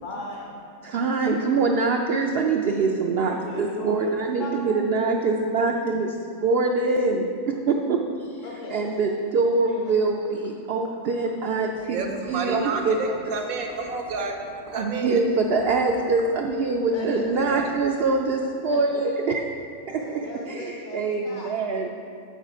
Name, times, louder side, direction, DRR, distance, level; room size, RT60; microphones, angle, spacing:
voice 1, 0.0-0.6 3.2-4.8 5.1-5.5 8.4-9.2 9.6-9.9 16.9-17.2 18.4-19.0 19.9-21.5, left 3 dB, 60° left, -3 dB, 1.3 m, -37 dB
voice 2, 0.9-6.1 6.4-7.2 8.7-10.2 10.7-12.0 12.3-13.0 14.7-18.4 18.6-19.2 20.6-20.7 20.9-21.9, right 3 dB, 65° right, 2 dB, 0.6 m, -23 dB
voice 3, 11.9-15.2 17.0-17.7, right 3 dB, 80° right, 3 dB, 1.3 m, -31 dB
7.1 x 6.5 x 4.9 m, 2.4 s
omnidirectional pair, 1.5 m